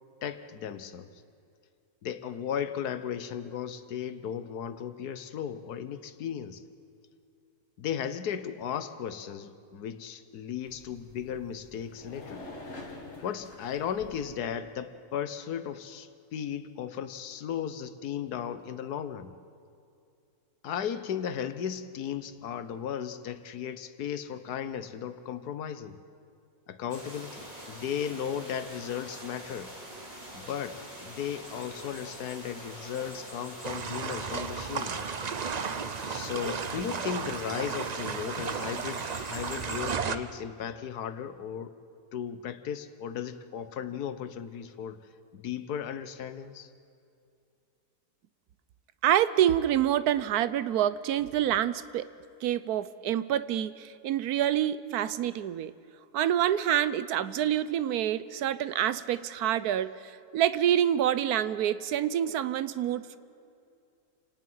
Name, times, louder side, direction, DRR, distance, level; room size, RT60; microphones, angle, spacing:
voice 1, 0.2-1.1 2.0-6.6 7.8-12.4 13.2-19.3 20.6-26.0 26.7-29.7 30.3-35.0 36.0-41.7 42.1-45.0 45.3-46.7, left 8 dB, 85° left, 12 dB, 1.5 m, -36 dB
sound 1, 10.6-14.4, left 2 dB, 45° left, 2.4 m, -46 dB
sound 2, 26.9-39.9, right 1 dB, 25° right, 3.7 m, -44 dB
sound 3, 33.6-40.2, right 6 dB, 45° right, 0.5 m, -34 dB
voice 2, 49.0-52.1 52.4-55.7 56.1-63.2, right 11 dB, 80° right, 15 dB, 1.2 m, -27 dB
28.0 x 18.5 x 5.6 m, 2.5 s
omnidirectional pair, 1.6 m